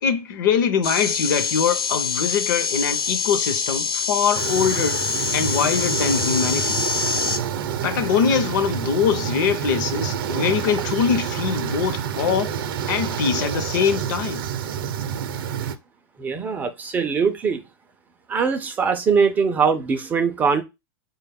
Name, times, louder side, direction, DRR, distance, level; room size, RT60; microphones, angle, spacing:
voice 1, 0.0-5.0 5.3-6.8 7.8-12.5 12.9-14.4, left 6 dB, 60° left, 0.7 m, -23 dB
sound 1, 0.8-7.4, left 5 dB, 80° left, 1.0 m, -25 dB
sound 2, 4.3-15.8, right 8 dB, 75° right, 0.5 m, -28 dB
voice 2, 16.2-17.6 18.3-20.6, right 5 dB, 15° right, 0.3 m, -21 dB
4.0 x 2.3 x 3.4 m
supercardioid pair, 155°, 12 cm